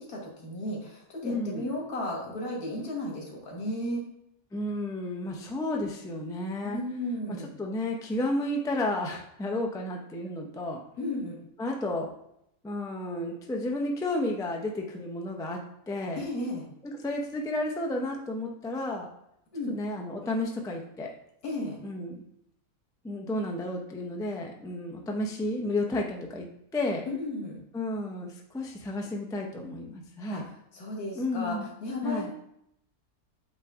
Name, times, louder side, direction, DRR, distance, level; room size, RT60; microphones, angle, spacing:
voice 1, 0.0-4.1 6.6-7.5 11.0-11.4 16.2-16.7 19.5-19.7 21.4-21.8 27.1-27.6 30.3-30.4 30.7-32.3, left 1 dB, 90° left, -1 dB, 2.0 m, -34 dB
voice 2, 1.2-1.7 4.5-6.8 7.3-10.8 11.6-12.1 12.6-16.2 16.8-19.1 19.7-21.1 21.8-22.2 23.0-26.5 26.7-27.0 27.7-30.4 31.1-31.7 32.0-32.3, left 1 dB, 5° left, 1 dB, 0.3 m, -32 dB
8.0 x 3.2 x 3.6 m, 0.76 s
omnidirectional pair, 1.5 m